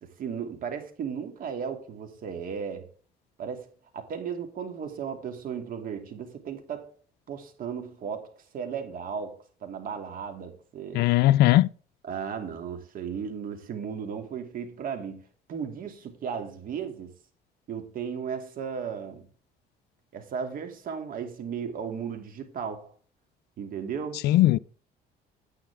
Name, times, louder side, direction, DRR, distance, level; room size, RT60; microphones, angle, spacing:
voice 1, 0.0-2.9 3.4-3.7 3.9-6.9 7.3-11.1 12.0-15.2 15.5-17.1 17.7-19.3 20.1-22.9 23.6-24.3, right 7 dB, 55° right, 2.8 m, -35 dB
voice 2, 10.9-11.7 24.2-24.6, left 15 dB, 75° left, 0.4 m, -19 dB
10.0 x 9.3 x 3.6 m
cardioid pair, 110°, 17 cm